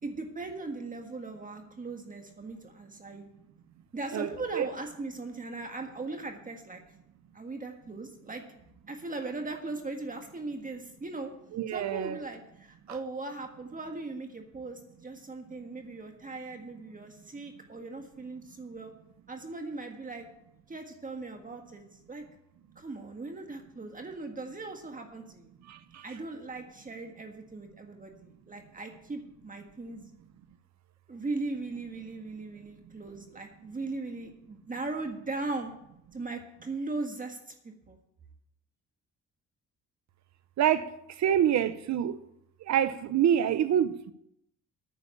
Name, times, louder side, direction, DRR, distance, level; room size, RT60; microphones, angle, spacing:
voice 1, 0.0-3.3 3.9-6.8 7.3-8.4 8.9-11.3 11.7-18.9 19.3-20.3 20.7-21.8 22.1-22.2 22.7-25.5 26.0-30.1 31.1-35.7 36.1-38.0, right 3 dB, 25° right, 1.7 m, -39 dB
voice 2, 4.1-4.7 11.5-12.2 40.6-40.9 41.2-42.2 42.7-44.1, right 10 dB, 65° right, 0.9 m, -26 dB
9.9 x 6.9 x 8.2 m
cardioid pair, 90°, 30 cm